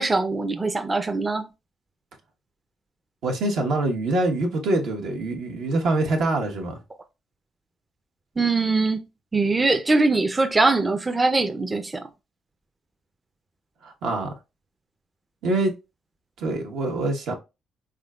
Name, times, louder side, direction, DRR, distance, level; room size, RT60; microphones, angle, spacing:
voice 1, 0.0-1.4 8.4-9.0 9.3-12.1, right 3 dB, 20° right, 0.4 m, -22 dB
voice 2, 3.2-6.8 13.8-14.3 15.4-15.7 16.4-17.3, right 2 dB, 80° right, 1.0 m, -25 dB
3.7 x 3.6 x 2.3 m
cardioid pair, 90°, 0 cm